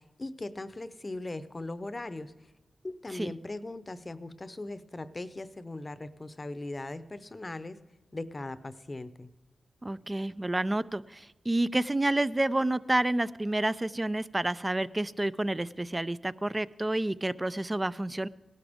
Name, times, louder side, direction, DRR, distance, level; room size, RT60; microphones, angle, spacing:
voice 1, 0.0-2.3 2.8-7.8 8.1-9.3, left 2 dB, 35° left, 13 dB, 0.8 m, -39 dB
voice 2, 9.8-18.3, right 1 dB, 25° right, 15 dB, 0.5 m, -29 dB
18.0 x 12.0 x 3.6 m, 1.1 s
cardioid pair, 55°, 0 cm